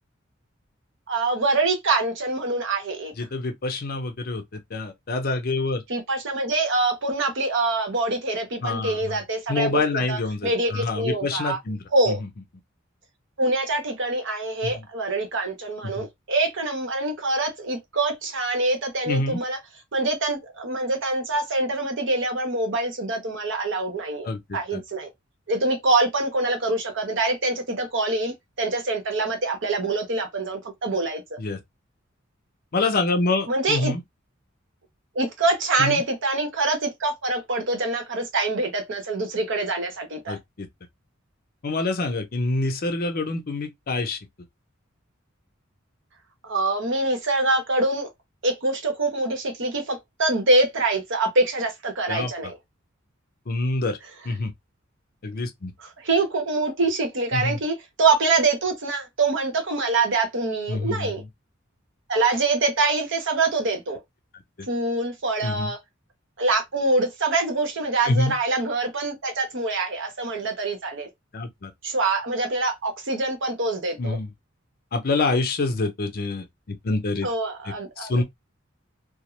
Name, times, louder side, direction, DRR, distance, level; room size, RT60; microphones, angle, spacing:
voice 1, 1.1-3.1 5.9-11.6 11.9-12.2 13.4-19.6 19.9-25.1 25.5-31.2 33.5-33.9 35.1-40.4 46.4-48.1 48.4-52.6 55.8-61.2 62.1-64.0 64.7-65.8 66.4-71.1 71.8-74.2 77.2-78.2, right 2 dB, 65° right, 0.8 m, -25 dB
voice 2, 3.2-4.4 4.7-5.8 8.6-9.2 9.5-12.3 14.6-14.9 15.8-16.0 19.1-19.4 24.2-24.8 31.4-31.6 32.7-34.0 35.8-36.0 40.3-40.7 41.6-44.2 52.1-52.5 53.5-54.0 54.2-54.5 55.2-55.7 57.3-57.6 60.7-61.3 64.6-64.7 65.4-65.7 68.0-68.3 71.3-71.7 74.0-74.3 74.9-77.3 78.0-78.2, left 3 dB, 50° left, 0.6 m, -26 dB
2.4 x 2.0 x 3.0 m
head